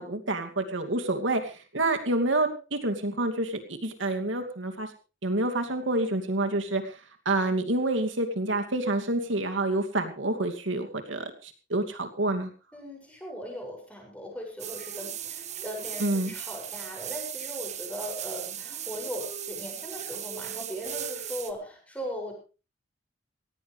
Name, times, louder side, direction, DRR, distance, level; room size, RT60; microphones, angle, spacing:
voice 1, 0.0-4.9 5.2-7.0 7.2-12.5 16.0-16.3, right 2 dB, 85° right, 5 dB, 2.6 m, -28 dB
voice 2, 12.7-22.3, equal, 5° left, 0 dB, 6.8 m, -39 dB
sound 1, 14.6-21.5, right 9 dB, 35° right, 1.3 m, -37 dB
18.0 x 17.0 x 3.4 m, 0.33 s
head